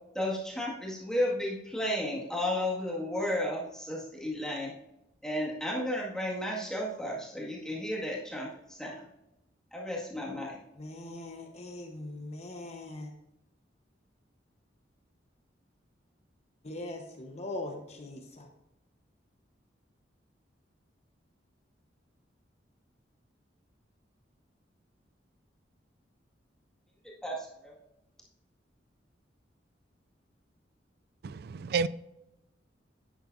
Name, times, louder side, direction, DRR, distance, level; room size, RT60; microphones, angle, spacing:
voice 1, 0.1-4.7 5.2-9.0 9.7-10.6 27.2-27.7, left 1 dB, 5° left, 2.0 m, -33 dB
voice 2, 10.8-13.1 16.6-18.5, left 2 dB, 35° left, 1.1 m, -41 dB
voice 3, 31.2-31.9, right 5 dB, 55° right, 0.4 m, -30 dB
11.5 x 9.0 x 2.7 m
head